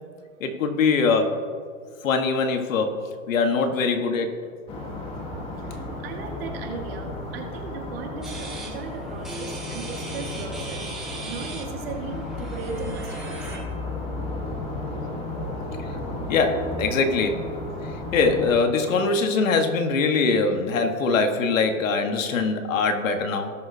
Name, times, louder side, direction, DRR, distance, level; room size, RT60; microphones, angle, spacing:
voice 1, 0.4-1.4 2.0-4.5 15.8-16.0 16.3-17.5 17.8-23.5, left 4 dB, 75° left, 5 dB, 1.5 m, -23 dB
sound 1, 4.7-18.5, left 2 dB, 15° left, 1.1 m, -33 dB
voice 2, 5.7-13.4, right 5 dB, 45° right, 2 dB, 1.8 m, -37 dB
sound 2, 8.2-13.6, right 3 dB, ahead, 0.5 m, -40 dB
18.5 x 6.2 x 2.8 m, 2.1 s
supercardioid pair, 165°, 40 cm